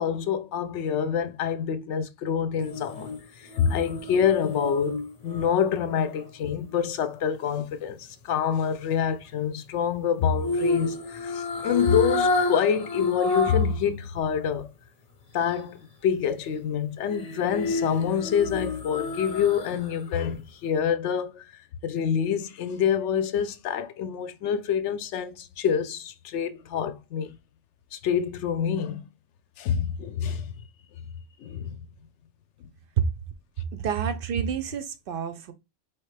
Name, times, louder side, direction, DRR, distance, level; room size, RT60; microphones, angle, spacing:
voice 1, 0.0-14.7 15.3-21.4 21.8-27.3 27.9-29.0 29.6-30.5 31.4-31.8, left 8 dB, 65° left, 0.8 m, -26 dB
sound 1, 2.6-6.8 10.4-13.8 14.2-14.3 17.1-20.0 20.3-20.4, left 2 dB, 35° left, 0.7 m, -30 dB
voice 2, 33.7-35.5, right 8 dB, 60° right, 0.6 m, -28 dB
4.5 x 3.1 x 3.2 m
omnidirectional pair, 1.4 m